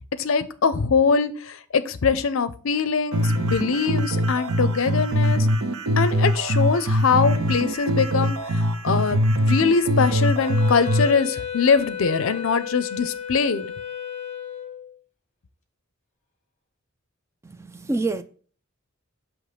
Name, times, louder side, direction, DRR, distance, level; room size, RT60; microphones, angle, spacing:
voice 1, 0.2-5.5 6.0-13.7, left 5 dB, 65° left, 0.5 m, -22 dB
sound 1, 3.1-11.1, equal, 85° right, 0.7 m, -22 dB
Wind instrument woodwind instrument, 10.4-15.0, left 8 dB, 35° left, 1.0 m, -33 dB
voice 2, 17.4-18.2, right 2 dB, 15° right, 0.3 m, -27 dB
6.5 x 3.0 x 5.0 m
head